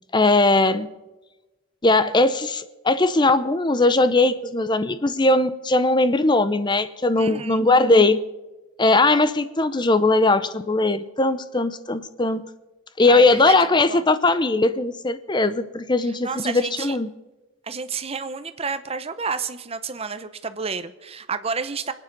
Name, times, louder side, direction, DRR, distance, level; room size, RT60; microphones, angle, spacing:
voice 1, 0.1-0.9 1.8-8.2 8.8-12.5 13.0-17.1, left 2 dB, 20° left, 13 dB, 0.6 m, -19 dB
voice 2, 7.1-7.6 13.1-13.5 13.9-14.0 16.0-17.0 17.6-21.9, right 5 dB, 30° right, 11 dB, 0.8 m, -30 dB
24.5 x 9.1 x 5.4 m, 1.1 s
head